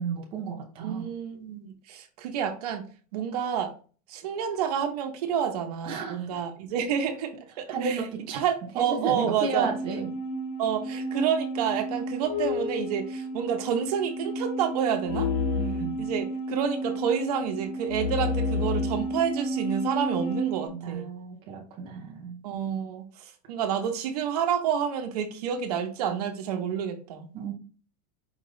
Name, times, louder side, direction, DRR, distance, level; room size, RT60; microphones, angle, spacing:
voice 1, 0.0-1.1 5.8-6.4 7.7-8.4 8.7-10.1 15.6-16.1 20.7-22.4 27.3-27.5, right 5 dB, 25° right, -1 dB, 0.8 m, -33 dB
voice 2, 0.8-2.8 3.1-3.7 4.1-8.0 8.3-9.7 10.6-15.3 16.0-21.1 22.4-27.3, right 8 dB, 70° right, 4 dB, 1.0 m, -29 dB
sound 1, 9.5-20.7, equal, 40° left, 1.3 m, -31 dB
5.1 x 2.9 x 3.1 m, 0.38 s
supercardioid pair, 175°, 20 cm